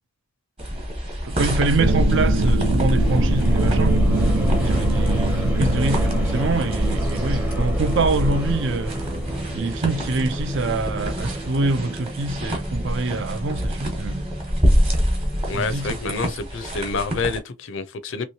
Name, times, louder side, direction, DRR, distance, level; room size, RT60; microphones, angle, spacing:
sound 1, 0.6-17.4, equal, 25° right, 1.1 m, -27 dB
voice 1, 1.2-4.0 4.6-8.9 9.5-14.3 15.5-16.3, right 3 dB, 55° right, 0.4 m, -25 dB
sound 2, 1.8-9.6, right 1 dB, 90° right, 0.7 m, -22 dB
sound 3, 2.9-16.1, equal, 10° right, 0.6 m, -33 dB
voice 2, 15.5-18.3, left 4 dB, 60° left, 0.5 m, -28 dB
3.0 x 3.0 x 2.8 m
head